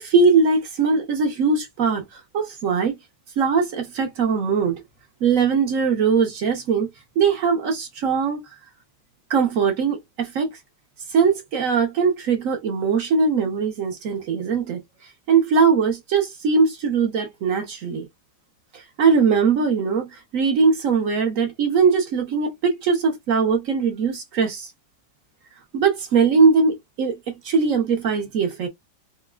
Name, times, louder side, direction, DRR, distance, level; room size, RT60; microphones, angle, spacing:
voice 1, 0.0-3.0 3.4-4.8 5.2-6.9 7.2-8.4 9.3-10.6 11.1-14.8 15.3-18.1 18.7-24.7 25.7-28.7, right 5 dB, 60° right, 1.0 m, -20 dB
3.9 x 2.1 x 2.2 m
omnidirectional pair, 1.8 m